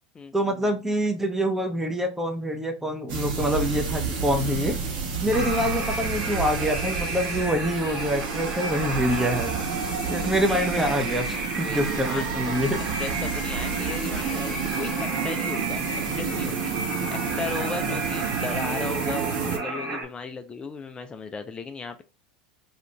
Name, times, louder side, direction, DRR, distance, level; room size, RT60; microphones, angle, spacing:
voice 1, 0.3-4.8 5.2-9.5 10.1-11.2 11.6-12.8, equal, 10° right, 5 dB, 0.7 m, -25 dB
sound 1, 3.1-19.6, right 5 dB, 60° right, 1.2 m, -30 dB
sound 2, 5.3-20.0, right 3 dB, 45° right, 1.2 m, -32 dB
voice 2, 10.4-11.1 11.6-12.6 13.0-15.8 16.2-16.7 17.1-22.0, left 4 dB, 25° left, 7 dB, 0.4 m, -36 dB
2.8 x 2.5 x 3.3 m, 0.29 s
hypercardioid pair, 85°, 4 cm